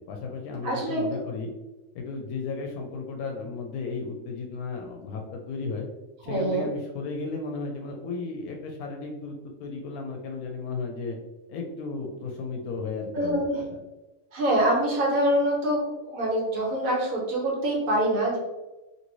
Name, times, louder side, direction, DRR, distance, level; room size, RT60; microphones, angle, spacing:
voice 1, 0.1-1.5 1.9-5.9 6.2-11.2 11.5-13.8, left 4 dB, 90° left, 2 dB, 1.1 m, -34 dB
voice 2, 0.6-1.2 6.3-6.7 13.1-13.6 14.3-18.4, right 1 dB, 75° right, -2 dB, 1.3 m, -25 dB
2.8 x 2.7 x 3.0 m, 1.1 s
omnidirectional pair, 1.5 m